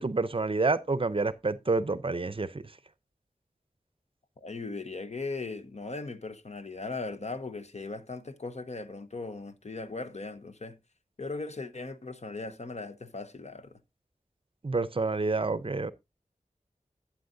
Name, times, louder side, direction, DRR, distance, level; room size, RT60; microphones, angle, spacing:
voice 1, 0.0-2.5 14.6-15.9, right 3 dB, 40° right, 0.6 m, -28 dB
voice 2, 4.4-10.8 11.2-13.8, left 3 dB, 55° left, 0.9 m, -38 dB
11.5 x 8.6 x 2.6 m
wide cardioid pair, 65°, 14 cm